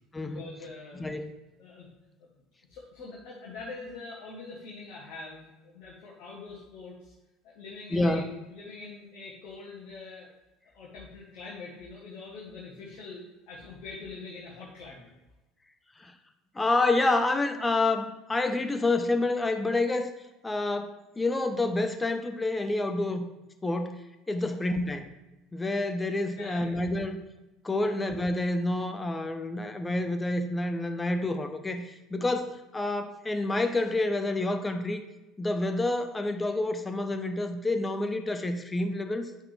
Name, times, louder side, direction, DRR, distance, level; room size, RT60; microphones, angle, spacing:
voice 1, 0.2-1.1 1.6-1.9 2.2-2.3 2.7-7.1 7.4-8.2 8.5-10.3 10.7-15.1 24.4-24.6 26.3-27.0 27.8-27.9 32.2-32.3, left 3 dB, 55° left, -4 dB, 1.4 m, -44 dB
voice 2, 1.0-1.3 7.9-8.2 16.0-16.1 16.5-20.1 20.4-23.2 23.6-24.0 24.3-25.1 25.5-27.2 27.6-35.0 35.4-39.3, left 2 dB, 15° left, 7 dB, 0.7 m, -28 dB
8.1 x 5.7 x 3.4 m, 1.0 s
figure-of-eight pair, 65°, 0 cm